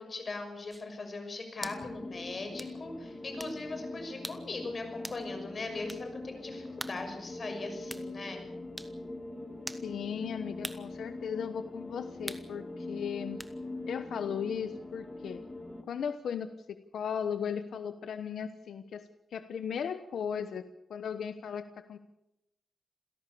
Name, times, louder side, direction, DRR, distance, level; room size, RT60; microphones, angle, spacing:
voice 1, 0.0-8.4, left 3 dB, 40° left, 6 dB, 6.3 m, -40 dB
sound 1, 0.7-0.9 1.6-1.8 2.6-2.7 3.4-3.6 4.2-4.5 5.0-5.2 5.9-6.1 6.8-7.0 7.9-8.1 8.8-8.9 9.7-9.9 10.6-10.9 12.3-12.5 13.4-13.5, right 1 dB, 5° right, 1.4 m, -42 dB
sound 2, 1.6-15.8, left 2 dB, 20° left, 3.0 m, -42 dB
voice 2, 9.8-13.4 13.9-15.4 15.9-20.6 20.9-22.0, left 7 dB, 85° left, 10 dB, 1.0 m, -36 dB
27.5 x 17.0 x 7.0 m, 0.88 s
wide cardioid pair, 125°, 0 cm